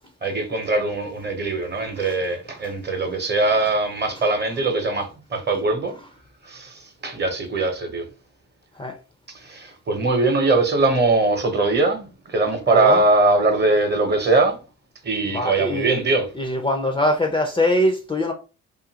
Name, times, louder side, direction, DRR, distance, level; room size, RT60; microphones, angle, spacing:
voice 1, 0.2-6.0 6.4-8.1 9.3-14.6 15.0-16.3, right 3 dB, 35° right, 0.9 m, -21 dB
voice 2, 12.7-13.0 15.3-16.0 16.4-18.3, left 1 dB, 15° left, 0.5 m, -22 dB
2.7 x 2.5 x 2.7 m
cardioid pair, 90°, 30 cm